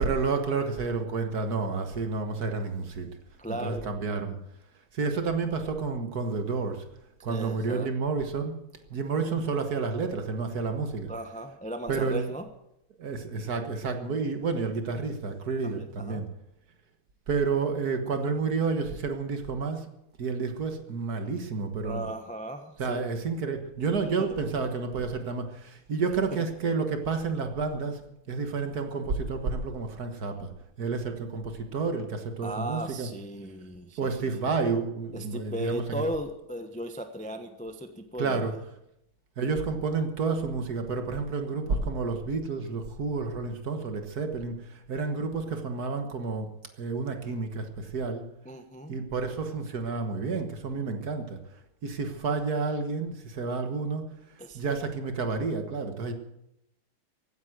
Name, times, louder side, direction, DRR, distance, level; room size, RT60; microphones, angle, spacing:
voice 1, 0.0-3.1 3.5-4.4 4.9-6.8 7.2-8.6 8.9-11.1 11.9-12.3 13.0-16.3 17.3-19.9 20.2-22.1 22.8-28.0 28.3-30.5 30.8-33.1 34.0-36.0 38.2-38.5 39.4-46.5 46.8-48.2 48.9-51.4 51.8-54.1 54.5-56.1, right 4 dB, 50° right, 6 dB, 1.8 m, -30 dB
voice 2, 3.4-3.9 7.3-7.9 11.1-12.5 15.6-16.2 21.8-23.0 24.2-24.3 32.4-34.5 35.1-38.5 48.4-49.0 54.4-54.6, equal, 5° left, 7 dB, 0.6 m, -36 dB
16.0 x 9.5 x 7.8 m, 0.84 s
omnidirectional pair, 2.3 m